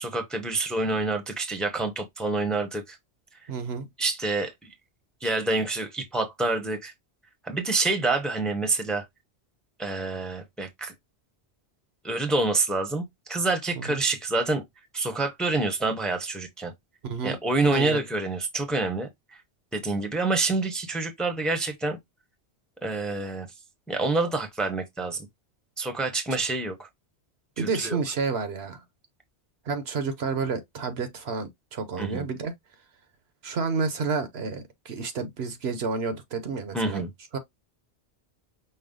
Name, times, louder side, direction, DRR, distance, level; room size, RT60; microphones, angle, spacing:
voice 1, 0.0-3.0 4.0-4.5 5.2-6.9 7.5-9.0 9.8-10.9 12.0-14.6 14.9-16.7 17.2-19.1 19.7-22.0 22.8-23.5 23.9-25.2 25.8-26.9 27.6-28.0 32.0-32.3 36.7-37.1, right 3 dB, ahead, 0.8 m, -27 dB
voice 2, 3.5-3.9 13.8-14.0 17.0-17.4 17.6-18.0 27.6-28.8 29.7-32.5 33.4-37.0 37.3-37.4, right 4 dB, 65° right, 1.0 m, -30 dB
5.4 x 2.1 x 3.7 m
omnidirectional pair, 1.1 m